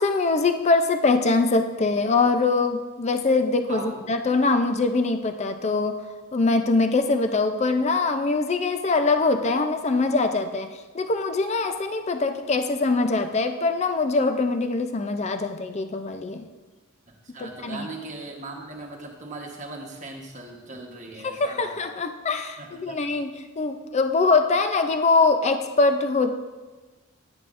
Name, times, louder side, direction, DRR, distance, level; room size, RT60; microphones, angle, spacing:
voice 1, 0.0-6.0 6.3-10.7 10.9-16.5 17.4-17.9 21.2-26.4, left 3 dB, 30° left, 8 dB, 0.4 m, -23 dB
voice 2, 3.7-4.0 17.1-21.8 22.6-23.1, right 2 dB, 35° right, 0 dB, 1.2 m, -39 dB
10.5 x 8.9 x 2.5 m, 1.3 s
head